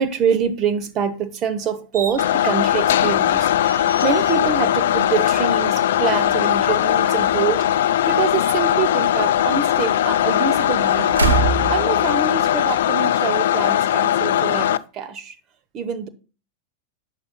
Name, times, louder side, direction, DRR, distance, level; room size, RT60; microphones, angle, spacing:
voice 1, 0.0-11.2 11.7-15.4 15.7-16.1, right 7 dB, 35° right, 1.0 m, -25 dB
sound 1, 1.9-12.8, right 5 dB, 70° right, 1.2 m, -31 dB
sound 2, 2.2-14.8, left 11 dB, 60° left, 0.4 m, -19 dB
12.0 x 9.1 x 2.3 m
figure-of-eight pair, 90°, 0 cm